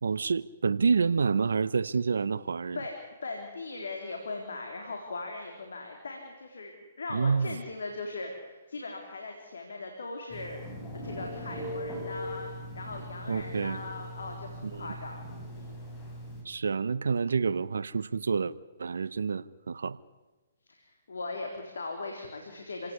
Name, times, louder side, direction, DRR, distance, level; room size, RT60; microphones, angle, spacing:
voice 1, 0.0-2.8 7.1-7.6 13.3-13.8 14.6-14.9 16.4-18.5 18.8-20.0, right 5 dB, 80° right, 19 dB, 0.9 m, -28 dB
voice 2, 2.7-10.6 10.9-12.5 12.8-15.3 15.5-15.7 20.7-22.9, left 3 dB, 80° left, 2 dB, 3.9 m, -39 dB
Telephone, 10.3-16.4, equal, 15° left, 7.3 m, -40 dB
28.0 x 18.0 x 9.8 m, 1.2 s
hypercardioid pair, 130°, 0 cm